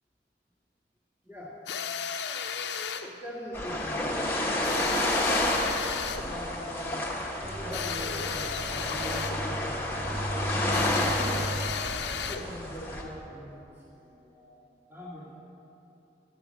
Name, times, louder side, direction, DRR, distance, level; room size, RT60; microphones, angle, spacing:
voice 1, 1.2-1.6 3.0-4.9 6.2-10.2 10.7-11.7 12.0-15.4, equal, 10° right, -8 dB, 1.5 m, -43 dB
sound 1, 1.7-3.1 4.6-6.3 7.7-9.4 10.7-12.5, left 7 dB, 75° left, 0.5 m, -34 dB
sound 2, 3.5-13.0, left 1 dB, 15° left, 1.0 m, -30 dB
sound 3, 7.4-12.5, right 1 dB, 55° right, 1.0 m, -36 dB
11.5 x 5.2 x 7.4 m, 3.0 s
head